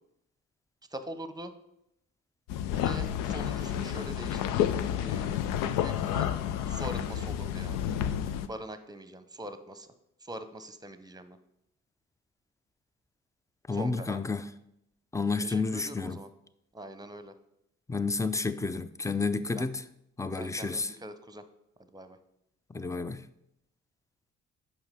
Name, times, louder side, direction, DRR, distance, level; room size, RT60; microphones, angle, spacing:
voice 1, 0.9-1.5 2.7-6.3 6.7-7.8 8.5-9.9 10.2-11.4 13.7-14.2 15.4-16.3 16.7-17.3 19.5-19.6 20.4-21.4 21.9-22.2, right 1 dB, 10° right, 0.8 m, -43 dB
sound 1, 2.5-8.5, left 10 dB, 80° left, 0.5 m, -30 dB
voice 2, 13.7-14.5 15.1-16.2 17.9-19.8 20.2-20.9 22.7-23.3, left 4 dB, 10° left, 0.5 m, -31 dB
5.8 x 4.9 x 5.7 m
hypercardioid pair, 50°, 32 cm